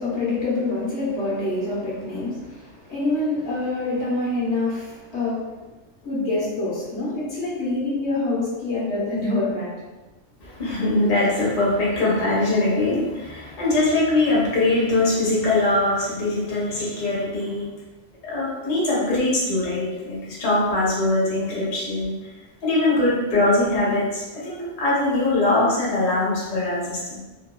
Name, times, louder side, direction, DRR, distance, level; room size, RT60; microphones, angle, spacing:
voice 1, 0.0-5.5 6.0-9.7, left 2 dB, 70° left, -7 dB, 1.2 m, -26 dB
voice 2, 10.4-17.7 18.2-22.2 22.6-27.2, left 2 dB, 45° left, -7 dB, 0.8 m, -22 dB
2.9 x 2.2 x 2.2 m, 1.1 s
omnidirectional pair, 1.2 m